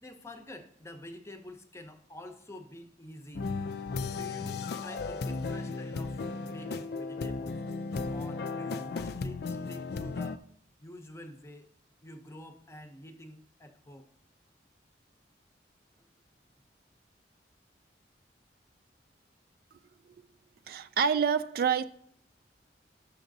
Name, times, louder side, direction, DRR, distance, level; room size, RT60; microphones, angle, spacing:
voice 1, 0.0-3.5 4.1-7.6 8.1-10.4 10.8-11.7 12.0-14.1 16.0-16.1, left 1 dB, 15° left, 0.7 m, -48 dB
sound 1, 3.3-10.4, left 4 dB, 60° left, 0.4 m, -35 dB
voice 2, 20.7-21.8, right 6 dB, 55° right, 0.3 m, -27 dB
11.5 x 7.1 x 2.7 m
head